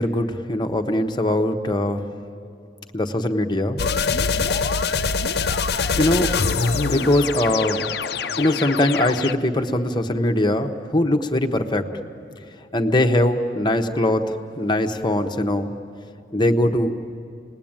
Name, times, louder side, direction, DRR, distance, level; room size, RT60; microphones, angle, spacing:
voice 1, 0.0-2.1 2.9-3.8 6.0-6.3 6.7-7.8 8.4-11.9 12.7-15.7 16.3-17.0, left 1 dB, 25° left, 6 dB, 1.1 m, -21 dB
sound 1, 3.8-9.3, left 5 dB, 60° left, 0.7 m, -24 dB
29.0 x 20.5 x 8.9 m, 2.8 s
head